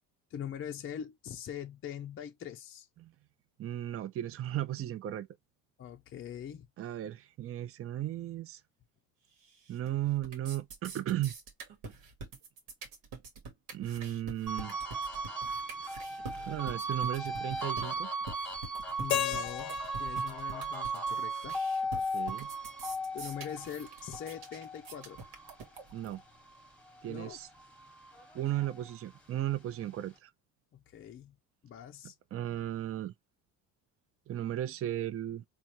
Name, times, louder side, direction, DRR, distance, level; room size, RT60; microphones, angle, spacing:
voice 1, 0.3-2.9 5.8-6.7 19.0-21.6 23.1-25.2 27.1-27.4 30.7-31.4 31.6-32.1, left 9 dB, 35° left, 0.5 m, -43 dB
voice 2, 3.6-5.3 6.8-8.6 9.7-11.3 13.7-14.8 16.3-18.1 21.9-22.5 25.9-26.2 27.0-27.5 28.3-30.3 32.3-33.1 34.3-35.4, right 12 dB, 35° right, 0.5 m, -35 dB
sound 1, 9.4-9.9 10.2-26.2, right 3 dB, 90° right, 1.3 m, -45 dB
sound 2, 14.5-27.1 27.5-29.2, right 2 dB, 5° left, 1.1 m, -37 dB
Keyboard (musical), 19.1-22.1, left 11 dB, 90° left, 0.6 m, -37 dB
4.0 x 2.4 x 2.8 m
supercardioid pair, 95°, 40 cm